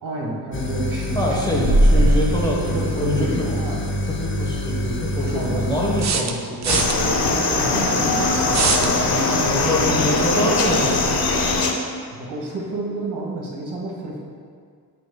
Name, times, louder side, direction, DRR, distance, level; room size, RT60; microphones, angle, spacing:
voice 1, 0.0-2.1 2.5-3.9 5.2-5.7 7.1-10.7 12.1-14.2, right 2 dB, 85° right, -3 dB, 1.5 m, -30 dB
sound 1, 0.5-6.1, equal, 30° left, 0.6 m, -22 dB
voice 2, 1.1-3.5 4.1-7.2 9.5-11.2, equal, 10° left, -4 dB, 1.1 m, -25 dB
sound 2, 3.9-4.0 6.0-7.0 8.5-8.9, right 6 dB, 45° right, 0.5 m, -22 dB
sound 3, 6.7-11.7, left 3 dB, 65° left, 0.8 m, -21 dB
8.6 x 6.0 x 2.3 m, 2.1 s
wide cardioid pair, 130°, 39 cm